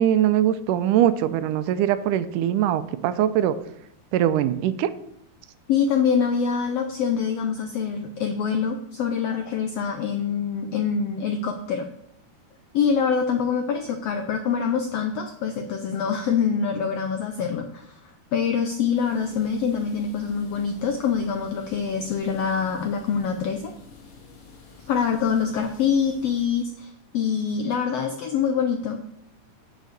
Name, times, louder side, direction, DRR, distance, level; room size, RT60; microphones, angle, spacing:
voice 1, 0.0-3.6 4.1-4.9, right 11 dB, 80° right, 12 dB, 2.1 m, -22 dB
voice 2, 5.7-11.9 12.7-17.9 18.3-23.7 24.9-29.0, left 6 dB, 80° left, 6 dB, 1.4 m, -25 dB
sound 1, 18.9-26.5, left 5 dB, 65° left, 3.1 m, -49 dB
9.1 x 6.7 x 6.6 m, 0.75 s
omnidirectional pair, 3.7 m